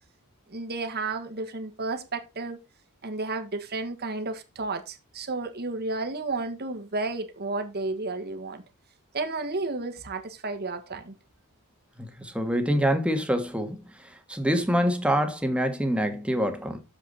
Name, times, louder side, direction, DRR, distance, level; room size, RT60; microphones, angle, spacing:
voice 1, 0.5-2.6 3.0-8.6 9.1-11.2, right 3 dB, 50° right, 1.5 m, -32 dB
voice 2, 12.0-13.8 14.3-16.8, equal, 5° right, 1.6 m, -25 dB
8.6 x 7.3 x 4.0 m
head